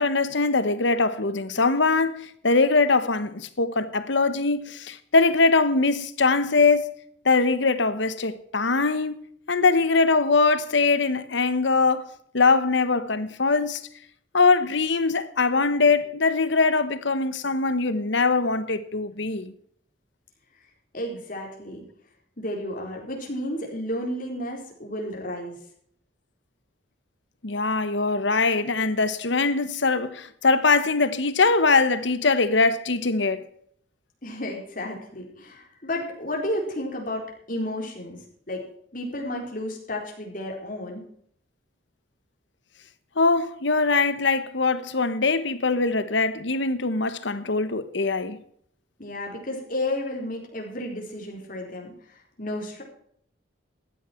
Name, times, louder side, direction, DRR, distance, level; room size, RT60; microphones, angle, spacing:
voice 1, 0.0-6.9 7.2-9.2 9.5-12.0 12.3-13.8 14.3-19.5 27.4-33.5 43.2-48.4, left 3 dB, 65° left, 1.1 m, -22 dB
voice 2, 20.9-21.8 22.4-25.6 34.2-38.2 38.5-38.6 38.9-41.0 49.0-52.8, left 1 dB, 45° left, 4.1 m, -32 dB
15.0 x 10.5 x 4.5 m
head